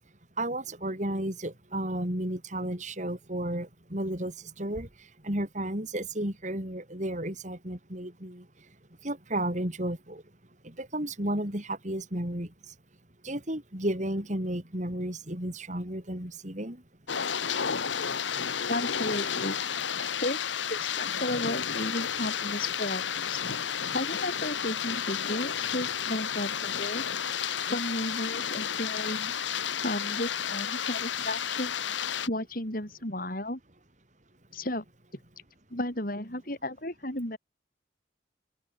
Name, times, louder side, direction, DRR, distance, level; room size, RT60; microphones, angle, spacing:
voice 1, 0.4-4.9 5.2-8.4 9.0-10.2 10.6-12.5 13.2-16.8, right 1 dB, 40° right, 4.5 m, -33 dB
sound 1, 17.1-32.3, left 8 dB, 85° left, 1.3 m, -32 dB
voice 2, 18.7-19.6 20.2-20.4 20.7-23.4 23.9-27.0 27.7-29.3 29.8-31.7 32.3-33.6 34.5-34.8 35.7-37.4, left 1 dB, 50° left, 6.5 m, -33 dB
open air
head